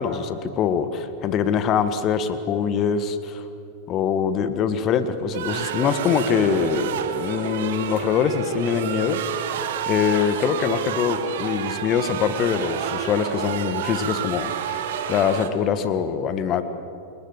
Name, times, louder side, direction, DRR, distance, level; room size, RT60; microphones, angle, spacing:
voice 1, 0.0-3.4 3.9-9.6 9.9-16.6, left 7 dB, 35° left, 11 dB, 1.6 m, -24 dB
sound 1, 5.3-15.5, right 8 dB, 55° right, 1.8 m, -29 dB
28.5 x 20.0 x 8.3 m, 2.7 s
figure-of-eight pair, 90°, 0 cm